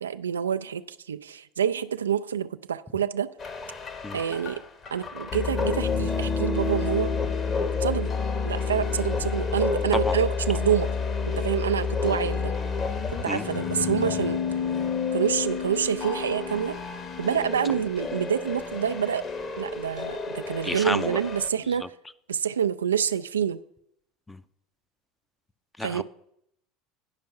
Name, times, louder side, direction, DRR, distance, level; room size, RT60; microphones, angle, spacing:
voice 1, 0.0-3.3 4.1-4.6 4.9-7.1 7.8-8.1 8.4-10.9 11.2-12.5 13.1-14.6 15.1-16.8 17.2-19.2 19.6-21.9 22.3-23.6 25.8-26.0, right 8 dB, 90° right, 0.3 m, -27 dB
sound 1, 3.4-21.5, left 5 dB, 40° left, 1.2 m, -29 dB
voice 2, 20.6-21.2 24.3-24.4 25.8-26.0, left 2 dB, 10° left, 0.5 m, -30 dB
10.5 x 5.3 x 5.7 m
hypercardioid pair, 80°, 0 cm